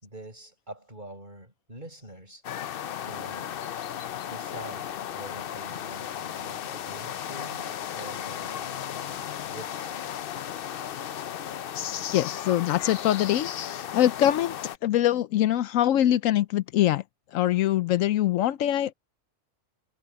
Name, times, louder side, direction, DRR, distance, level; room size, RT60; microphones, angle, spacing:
voice 1, 0.0-2.4 3.0-3.6 4.3-10.1, right 1 dB, 35° right, 7.7 m, -45 dB
sound 1, 2.4-14.8, left 10 dB, 60° left, 0.6 m, -35 dB
voice 2, 12.1-14.5 14.8-17.0 17.3-18.9, left 12 dB, 80° left, 1.0 m, -23 dB
omnidirectional pair, 1.4 m